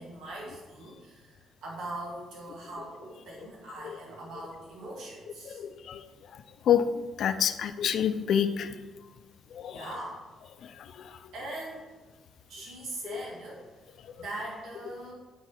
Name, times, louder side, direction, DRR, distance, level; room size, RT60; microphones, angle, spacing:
voice 1, 0.0-5.6 9.7-10.2 11.3-11.9 12.5-13.7 14.2-15.1, right 1 dB, 80° right, -4 dB, 2.2 m, -41 dB
voice 2, 5.4-6.1 6.3-6.8 7.2-8.7 9.5-9.9 10.6-11.2 13.0-13.2, left 9 dB, 65° left, 10 dB, 0.6 m, -28 dB
9.2 x 4.7 x 5.7 m, 1.2 s
cardioid pair, 90°, 0 cm